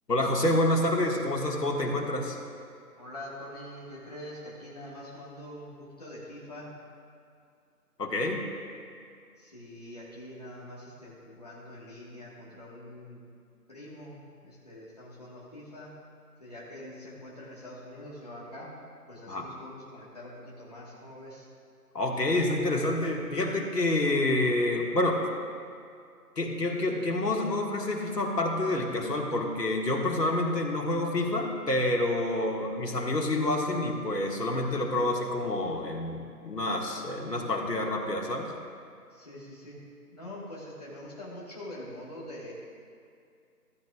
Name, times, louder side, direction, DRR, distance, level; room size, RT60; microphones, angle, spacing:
voice 1, 0.1-2.4 8.0-8.5 19.3-19.5 21.9-25.2 26.4-38.5, left 1 dB, 75° left, 1 dB, 1.8 m, -28 dB
voice 2, 3.0-6.7 9.4-13.2 13.7-15.9 16.4-18.7 19.1-21.5 39.1-39.8 40.1-42.5, left 1 dB, 25° left, -7 dB, 1.4 m, -44 dB
14.5 x 13.0 x 2.3 m, 2.3 s
figure-of-eight pair, 175°, 48 cm